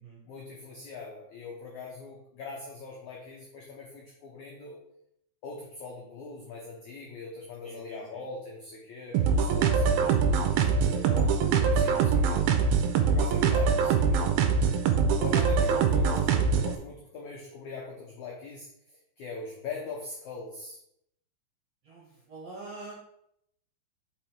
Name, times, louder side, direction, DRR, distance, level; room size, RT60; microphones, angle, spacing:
voice 1, 0.3-4.8 5.4-12.4 13.0-14.4 15.1-20.8, left 4 dB, 80° left, -2 dB, 1.7 m, -42 dB
voice 2, 7.6-8.2 11.6-12.0 21.8-22.9, right 3 dB, 65° right, -4 dB, 1.6 m, -45 dB
sound 1, 9.1-16.8, right 6 dB, 85° right, 2.1 m, -24 dB
5.4 x 5.4 x 4.5 m, 0.74 s
omnidirectional pair, 5.0 m